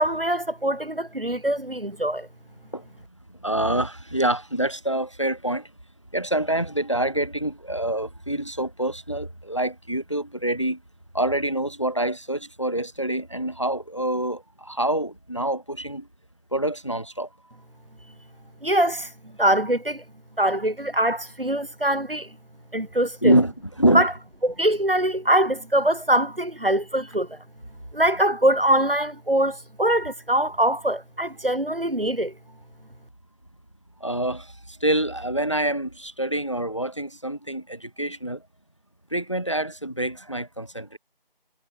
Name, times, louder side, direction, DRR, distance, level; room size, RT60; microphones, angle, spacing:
voice 1, 0.0-2.3 18.6-19.1 19.4-20.0 20.4-22.3 22.7-23.3 23.9-24.1 24.4-27.4 27.9-32.3, right 1 dB, 70° right, 3.8 m, -23 dB
voice 2, 3.3-5.7 6.1-10.8 11.1-16.1 16.5-17.3 23.2-23.5 23.8-24.1 34.0-38.4 39.1-41.0, right 1 dB, 30° left, 1.7 m, -26 dB
figure-of-eight pair, 180°, 29 cm